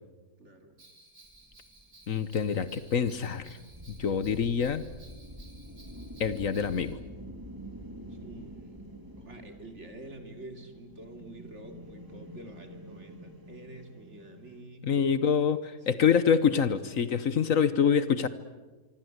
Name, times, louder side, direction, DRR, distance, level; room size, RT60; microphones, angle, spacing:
voice 1, 0.4-0.8 8.1-8.9 9.2-15.4 15.8-16.1, right 1 dB, 50° right, 5 dB, 3.3 m, -47 dB
Bell, 0.8-6.9, right 2 dB, 70° right, 4.9 m, -57 dB
sound 1, 1.2-14.6, equal, 15° right, 2.9 m, -47 dB
voice 2, 2.1-3.6 4.0-4.8 6.2-7.0 14.8-15.6 15.9-18.3, left 7 dB, 60° left, 14 dB, 1.4 m, -25 dB
25.5 x 24.5 x 8.1 m, 1.2 s
omnidirectional pair, 1.6 m